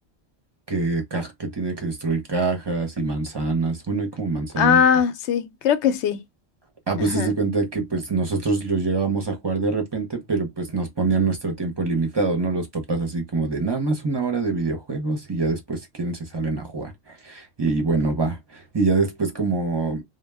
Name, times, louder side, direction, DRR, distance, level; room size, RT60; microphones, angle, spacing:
voice 1, 0.7-4.8 6.9-20.0, right 3 dB, 30° right, 0.6 m, -25 dB
voice 2, 4.6-6.2 7.0-7.3, left 8 dB, 90° left, 0.9 m, -20 dB
2.1 x 2.1 x 3.3 m
omnidirectional pair, 1.1 m